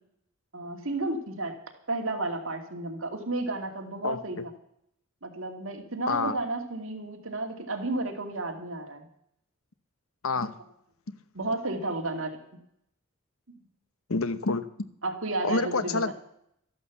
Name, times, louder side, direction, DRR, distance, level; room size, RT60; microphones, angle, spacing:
voice 1, 0.5-1.5 1.9-4.4 5.2-9.1 11.3-12.4 13.5-13.6 15.0-16.1, right 2 dB, 70° right, 3 dB, 2.5 m, -32 dB
voice 2, 10.2-10.5 11.1-11.2 14.1-14.7 15.4-16.1, left 3 dB, 80° left, 13 dB, 1.0 m, -27 dB
13.5 x 11.5 x 7.2 m, 0.73 s
head